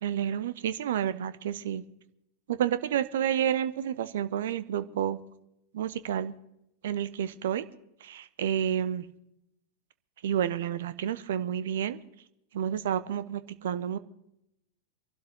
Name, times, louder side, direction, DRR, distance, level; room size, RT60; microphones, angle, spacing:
voice 1, 0.0-1.8 2.5-5.2 5.7-6.3 6.8-7.7 8.0-9.0 10.2-12.0 12.5-14.0, right 9 dB, 60° right, 14 dB, 0.9 m, -30 dB
25.5 x 12.0 x 3.7 m, 0.81 s
figure-of-eight pair, 90°, 0 cm